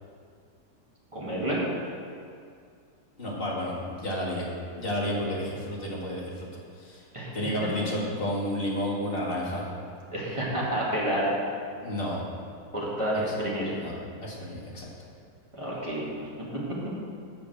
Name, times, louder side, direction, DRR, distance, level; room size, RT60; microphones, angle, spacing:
voice 1, 1.1-1.6 7.1-7.3 10.1-11.3 12.7-13.7 15.5-16.0 16.5-16.6, right 1 dB, 20° right, -7 dB, 2.0 m, -29 dB
voice 2, 3.2-4.5 4.7-6.3 6.8-7.0 7.3-9.6 11.8-12.3 13.7-13.9 14.2-14.9, equal, 35° left, -5 dB, 2.0 m, -31 dB
7.0 x 6.1 x 7.7 m, 2.3 s
omnidirectional pair, 1.6 m